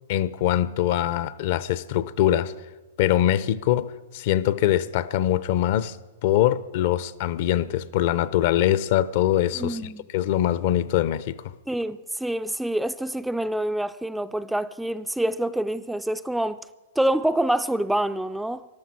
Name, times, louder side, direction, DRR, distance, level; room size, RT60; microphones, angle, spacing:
voice 1, 0.1-2.5 3.0-6.0 6.2-9.8 10.1-11.4, left 12 dB, 55° left, 0.6 m, -23 dB
voice 2, 9.5-10.1 11.7-16.6 17.0-18.7, right 1 dB, 5° right, 0.4 m, -26 dB
14.0 x 12.0 x 6.0 m
hypercardioid pair, 125°, 0 cm